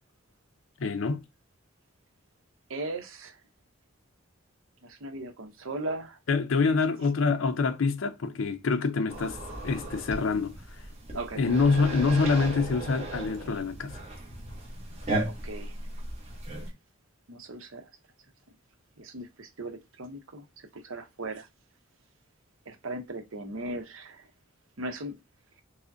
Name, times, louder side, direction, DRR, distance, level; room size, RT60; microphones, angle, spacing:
voice 1, 0.8-1.2 6.3-10.5 11.4-14.0, left 4 dB, 70° left, 0.5 m, -26 dB
voice 2, 2.7-3.4 4.8-6.2 6.7-6.8 11.1-11.4 12.2-12.3 15.3-15.7 17.3-17.9 19.0-21.5 22.7-24.3 24.8-25.2, right 2 dB, 75° right, 0.7 m, -38 dB
sound 1, 9.1-16.7, right 2 dB, 30° right, 0.9 m, -36 dB
4.8 x 2.1 x 2.6 m
head